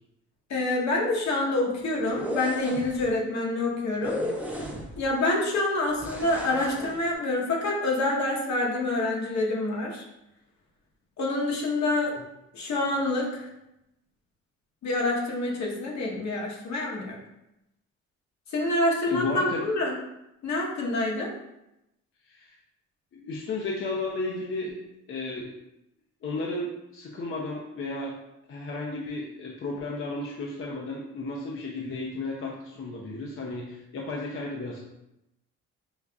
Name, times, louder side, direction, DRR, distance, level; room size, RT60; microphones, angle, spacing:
voice 1, 0.5-4.2 5.0-10.0 11.2-12.1 12.5-13.5 14.8-17.2 18.5-19.9 20.4-21.3, left 2 dB, 65° left, -2 dB, 1.1 m, -27 dB
sound 1, 2.1-3.0 4.0-5.1 6.0-7.0, equal, 5° right, 0.6 m, -34 dB
voice 2, 19.1-19.7 22.3-22.6 23.1-24.8 25.1-25.5 26.2-28.1 28.5-34.8, left 2 dB, 45° left, -2 dB, 0.6 m, -33 dB
5.5 x 2.4 x 2.3 m, 0.88 s
cardioid pair, 90°, 30 cm